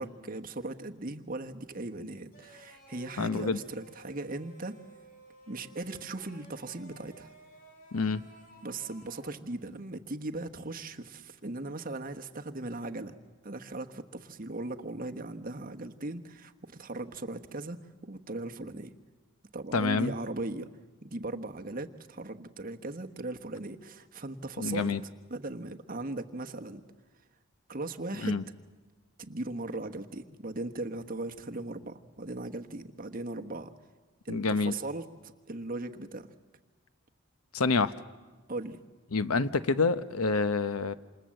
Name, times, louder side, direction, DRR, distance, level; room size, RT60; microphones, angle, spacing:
voice 1, 0.0-4.8 5.5-7.3 8.6-13.1 13.4-18.9 19.5-20.7 21.0-24.9 25.3-26.8 27.7-28.4 29.2-33.7 34.2-36.3 38.5-38.8, right 2 dB, 40° right, 5 dB, 1.2 m, -38 dB
sound 1, 2.3-9.3, equal, 40° left, 3.1 m, -55 dB
voice 2, 3.2-3.6 7.9-8.2 19.7-20.1 24.6-25.0 28.2-28.4 34.3-34.7 37.5-37.9 39.1-40.9, left 4 dB, 85° left, 13 dB, 0.9 m, -27 dB
27.5 x 27.5 x 7.7 m, 1.3 s
head